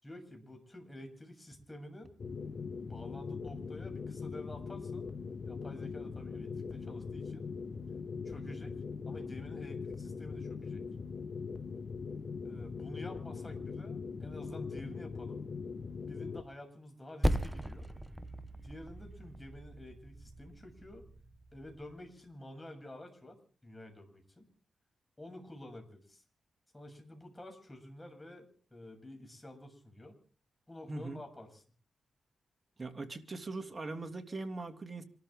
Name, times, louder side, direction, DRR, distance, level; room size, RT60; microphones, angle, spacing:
voice 1, 0.0-2.1 2.9-5.1 5.4-7.5 8.2-8.8 9.1-10.8 12.4-15.4 16.1-17.9 18.6-21.1 21.5-23.4 23.6-24.5 25.2-26.2 26.7-30.1 30.7-31.6, left 1 dB, 15° left, 4 dB, 7.4 m, -49 dB
sound 1, 2.2-16.4, left 5 dB, 55° left, 1.6 m, -41 dB
Percussion, 17.2-22.1, equal, 10° right, 1.0 m, -37 dB
voice 2, 30.9-31.2 32.8-35.0, right 3 dB, 35° right, 7 dB, 2.8 m, -41 dB
27.5 x 13.5 x 3.7 m, 0.44 s
cardioid pair, 65°, 0 cm